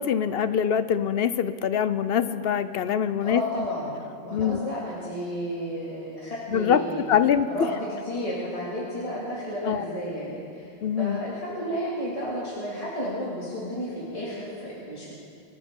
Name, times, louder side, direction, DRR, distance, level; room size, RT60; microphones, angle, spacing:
voice 1, 0.0-3.7 4.3-4.6 6.5-6.8 7.1-7.5 9.6-9.8 10.8-11.2, left 8 dB, 65° left, 13 dB, 0.8 m, -24 dB
voice 2, 3.2-7.0 7.5-15.1, equal, 30° left, -7 dB, 2.4 m, -32 dB
25.0 x 13.0 x 3.7 m, 2.4 s
omnidirectional pair, 1.1 m